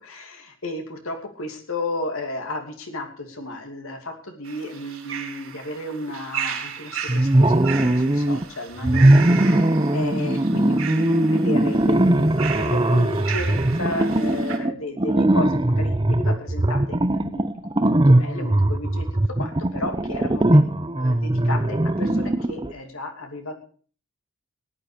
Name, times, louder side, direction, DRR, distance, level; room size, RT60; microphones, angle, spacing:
voice 1, 0.0-9.3 9.7-12.2 12.5-19.1 19.4-20.6 21.0-23.5, left 2 dB, 80° left, 4 dB, 2.8 m, -33 dB
sound 1, 4.4-14.6, right 8 dB, 75° right, 4.4 m, -35 dB
sound 2, 7.1-8.4 8.8-22.7, right 1 dB, 20° right, 0.7 m, -20 dB
18.0 x 10.0 x 5.1 m, 0.44 s
head